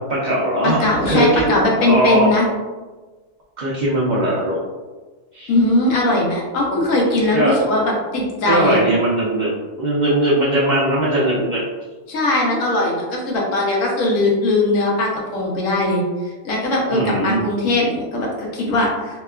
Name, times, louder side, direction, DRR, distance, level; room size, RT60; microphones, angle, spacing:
voice 1, 0.1-2.4 3.6-4.6 5.3-5.5 7.3-7.6 8.5-9.5 9.8-11.6 16.9-17.5, right 1 dB, 60° right, -8 dB, 0.4 m, -19 dB
voice 2, 0.6-2.5 5.5-8.8 12.1-16.0 16.4-19.2, left 2 dB, 85° left, -2 dB, 1.1 m, -19 dB
2.8 x 2.3 x 2.2 m, 1.3 s
omnidirectional pair, 1.3 m